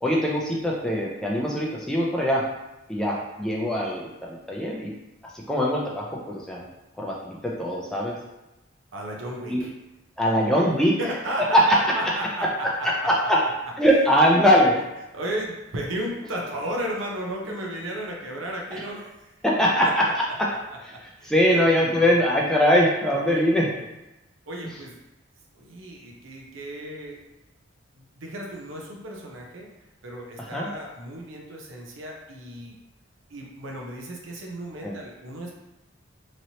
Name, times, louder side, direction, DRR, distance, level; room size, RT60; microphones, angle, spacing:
voice 1, 0.0-2.4 2.9-4.9 5.5-6.7 7.0-8.1 9.5-9.6 10.2-11.0 11.4-11.8 12.4-12.5 13.0-13.4 13.8-14.8 19.4-20.0 20.8-20.9 21.2-23.7 30.5-30.7 34.8-35.0, equal, 5° left, -4 dB, 0.4 m, -22 dB
voice 2, 8.9-9.7 11.0-13.3 15.1-19.3 19.8-20.1 20.9-21.6 23.3-23.4 23.7-23.9 24.5-24.9 25.5-27.2 27.9-29.7 30.0-32.8 33.3-35.5, right 1 dB, 80° right, 0 dB, 0.7 m, -34 dB
3.1 x 2.8 x 2.8 m, 0.96 s
head